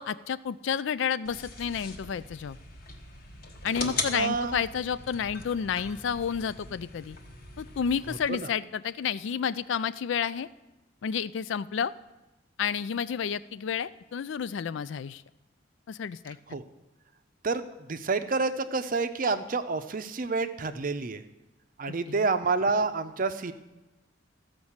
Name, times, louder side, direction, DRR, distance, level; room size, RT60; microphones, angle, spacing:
voice 1, 0.0-2.6 3.6-7.2 7.6-10.5 11.0-11.9 12.6-15.2 15.9-16.4 22.1-22.2, left 7 dB, 65° left, 16 dB, 0.3 m, -30 dB
sound 1, 1.2-8.3, left 3 dB, 50° left, 1.2 m, -40 dB
voice 2, 4.1-4.6 8.1-8.5 16.5-16.6 17.4-17.6 17.9-21.2 21.8-23.5, right 4 dB, 45° right, 10 dB, 0.6 m, -28 dB
14.0 x 5.2 x 7.2 m, 1.0 s
head